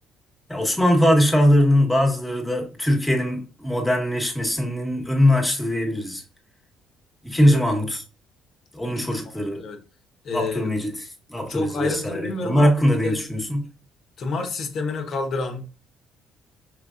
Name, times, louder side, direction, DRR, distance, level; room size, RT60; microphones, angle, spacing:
voice 1, 0.5-6.2 7.2-8.0 8.7-9.6 10.3-13.6, equal, 10° left, 1.2 m, -21 dB
voice 2, 9.4-9.8 10.2-10.8 11.5-13.2 14.2-15.6, left 3 dB, 60° left, 1.0 m, -29 dB
5.1 x 3.3 x 2.5 m
supercardioid pair, 75°, 0 cm